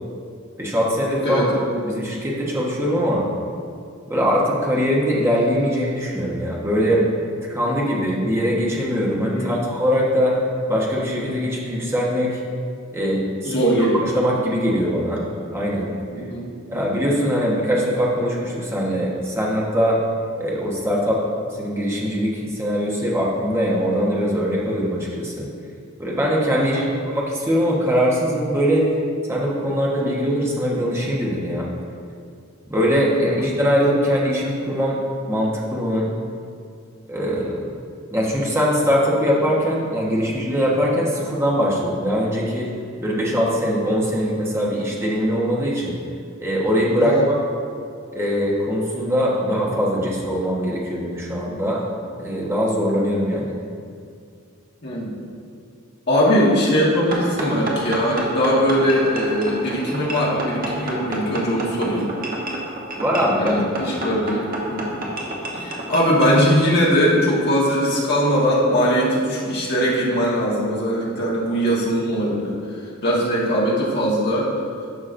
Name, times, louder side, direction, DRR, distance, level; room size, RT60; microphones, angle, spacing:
voice 1, 0.6-1.5 1.8-3.2 4.1-7.0 7.5-10.4 10.7-12.4 12.9-13.6 14.0-15.2 15.5-15.9 16.7-20.0 20.4-25.5 26.0-28.8 29.3-31.7 32.7-35.0 35.3-36.1 37.1-37.7 38.1-42.7 43.0-46.0 46.4-47.2 48.1-51.8 52.2-53.5 63.0-63.6 63.9-64.0, equal, 15° right, -4 dB, 1.1 m, -22 dB
voice 2, 1.2-1.6 9.3-9.6 13.4-14.1 16.1-16.5 26.6-26.9 33.2-33.5 47.0-47.2 54.8-55.1 56.1-62.0 63.4-64.9 65.5-72.5 73.0-74.5, equal, 50° left, -5 dB, 1.5 m, -20 dB
sound 1, 57.1-66.4, right 1 dB, 45° right, 1.1 m, -29 dB
11.0 x 5.8 x 2.6 m, 2.3 s
head